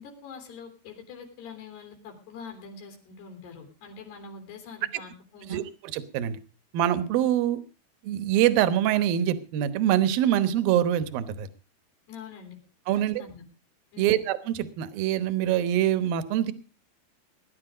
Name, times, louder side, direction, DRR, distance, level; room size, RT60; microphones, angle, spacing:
voice 1, 0.0-5.6 12.1-12.6 13.2-13.4 13.9-14.2, left 5 dB, 90° left, 3 dB, 5.7 m, -44 dB
voice 2, 5.9-6.4 6.7-7.6 8.0-11.5 12.9-13.2 14.0-16.5, right 11 dB, 70° right, 13 dB, 2.7 m, -24 dB
20.0 x 11.0 x 5.0 m, 0.35 s
omnidirectional pair, 4.6 m